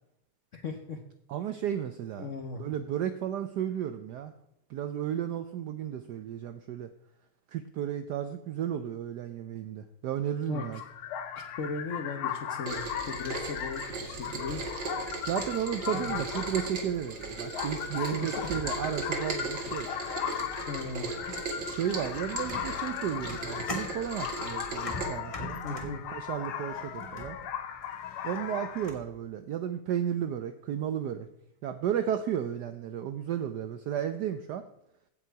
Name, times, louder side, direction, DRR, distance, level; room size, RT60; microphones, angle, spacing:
voice 1, 0.5-1.0 2.2-2.6 10.5-10.8 11.6-15.1 15.9-16.2 17.9-18.6 19.7-19.9 20.7-21.2 25.6-26.0, left 4 dB, 55° left, 4 dB, 0.8 m, -38 dB
voice 2, 1.3-2.3 2.6-4.3 4.7-6.9 7.5-10.8 15.3-19.9 21.6-27.4 28.2-31.3 31.6-34.6, right 9 dB, 75° right, 9 dB, 0.9 m, -33 dB
sound 1, 10.5-28.9, left 9 dB, 80° left, 1.8 m, -37 dB
Rain, 12.7-25.1, right 3 dB, 60° right, 2.4 m, -38 dB
sound 2, 14.8-16.8 17.3-17.7 18.8-18.9 19.4-19.6 19.9-29.1, left 2 dB, 20° left, 1.3 m, -45 dB
15.5 x 5.8 x 4.6 m, 0.82 s
omnidirectional pair, 2.4 m